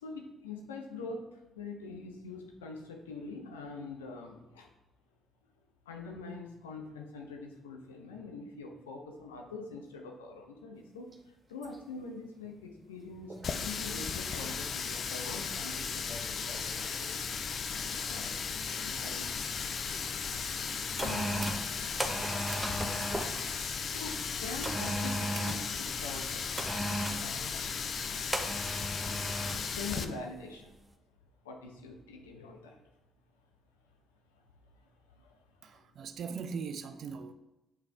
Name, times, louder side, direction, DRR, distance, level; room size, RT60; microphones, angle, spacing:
voice 1, 0.0-4.7 5.8-18.3 18.8-19.3 21.0-21.9 22.1-22.7 23.9-26.5 27.1-27.7 29.5-30.7 31.4-32.8 34.3-34.4 34.7-34.9 35.2-35.4, left 3 dB, 80° left, 1.0 m, -44 dB
sound 1, 10.8-18.9 19.2-19.8 20.1-20.2 21.1-21.6 22.1-24.1, right 2 dB, 30° right, 1.4 m, -53 dB
Water tap faucet, 13.4-30.0, left 6 dB, 50° left, 0.6 m, -36 dB
sound 2, 17.4-17.5 18.1-18.4 18.6-19.8 20.5-23.4 24.6-25.7 26.6-27.3 28.3-29.7 30.0-30.2, right 1 dB, 10° right, 1.1 m, -35 dB
voice 2, 35.6-37.3, right 5 dB, 55° right, 0.6 m, -40 dB
8.5 x 5.3 x 3.5 m
figure-of-eight pair, 45°, 0 cm